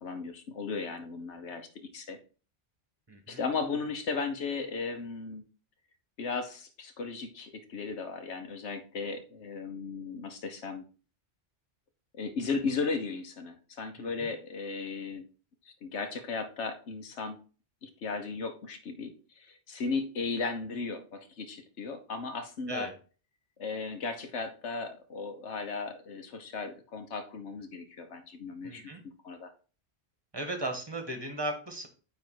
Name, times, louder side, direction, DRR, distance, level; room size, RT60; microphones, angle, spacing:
voice 1, 0.0-2.2 3.3-5.4 6.2-10.8 12.2-15.2 15.6-17.4 17.8-22.9 23.6-29.5, left 4 dB, 85° left, 7 dB, 1.2 m, -36 dB
voice 2, 3.1-3.4 14.0-14.3 22.7-22.9 28.6-29.0 30.3-31.9, right 2 dB, 20° right, 5 dB, 1.3 m, -36 dB
9.3 x 3.2 x 4.6 m, 0.37 s
omnidirectional pair, 1.2 m